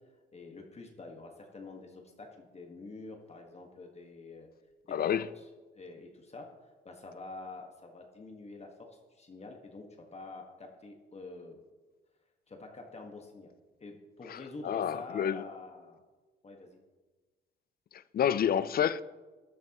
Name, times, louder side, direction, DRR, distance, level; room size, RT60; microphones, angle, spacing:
voice 1, 0.3-4.5 5.0-5.1 5.7-6.5 6.8-11.6 12.5-13.5 13.8-16.0 16.4-16.8, left 3 dB, 35° left, 1.5 m, -47 dB
voice 2, 4.9-5.3 14.3-15.4 17.9-19.0, left 9 dB, 50° left, 0.5 m, -29 dB
13.5 x 10.5 x 3.0 m
cardioid pair, 90°, 20 cm